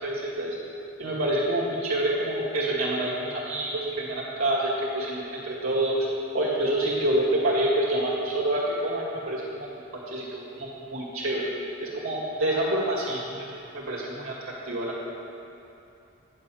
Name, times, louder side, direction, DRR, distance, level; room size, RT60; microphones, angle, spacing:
voice 1, 0.0-0.6 1.0-4.7 4.9-6.1 6.3-9.7 10.1-11.4 11.8-13.5 13.7-14.3 14.7-14.9, right 1 dB, 85° right, -5 dB, 2.2 m, -27 dB
10.5 x 5.0 x 7.7 m, 2.9 s
head